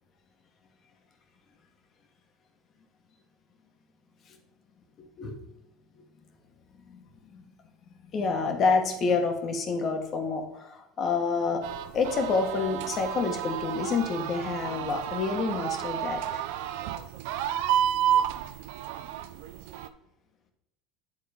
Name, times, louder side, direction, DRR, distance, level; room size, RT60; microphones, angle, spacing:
voice 1, 5.0-5.4 6.8-7.4 8.1-11.6 11.9-16.4, left 4 dB, 40° left, 4 dB, 1.4 m, -28 dB
sound 1, 11.6-19.9, right 10 dB, 75° right, 0.5 m, -31 dB
8.4 x 3.7 x 5.0 m, 0.88 s
supercardioid pair, 105°, 0 cm